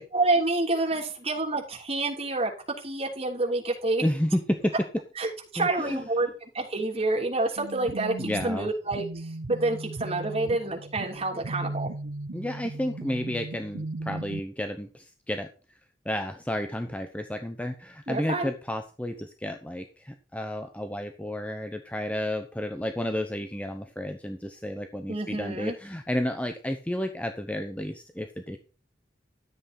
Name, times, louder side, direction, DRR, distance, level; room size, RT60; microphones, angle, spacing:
voice 1, 0.1-2.5 2.8-4.0 5.2-11.9 18.1-18.5 25.1-25.8, right 2 dB, 35° right, -1 dB, 3.2 m, -28 dB
voice 2, 4.0-4.7 5.6-6.0 8.2-8.7 12.3-15.5 16.0-28.6, left 1 dB, 10° left, 6 dB, 0.8 m, -31 dB
sound 1, 7.6-14.4, right 2 dB, 85° right, 0.8 m, -37 dB
13.0 x 8.2 x 4.4 m, 0.36 s
head